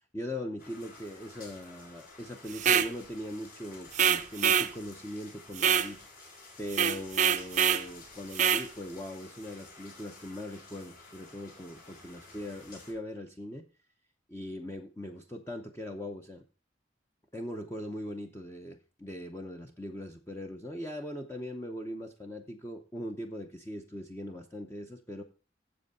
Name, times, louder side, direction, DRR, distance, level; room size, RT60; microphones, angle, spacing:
voice 1, 0.1-6.0 6.6-13.6 14.3-16.5 17.3-25.2, left 1 dB, 15° left, 4 dB, 0.7 m, -40 dB
sound 1, 0.6-12.9, left 3 dB, 50° left, 3.4 m, -52 dB
sound 2, 2.5-2.9 3.9-4.7 5.6-5.9 6.7-7.9 8.3-8.7, right 8 dB, 40° right, 0.5 m, -25 dB
7.7 x 7.6 x 5.3 m, 0.35 s
head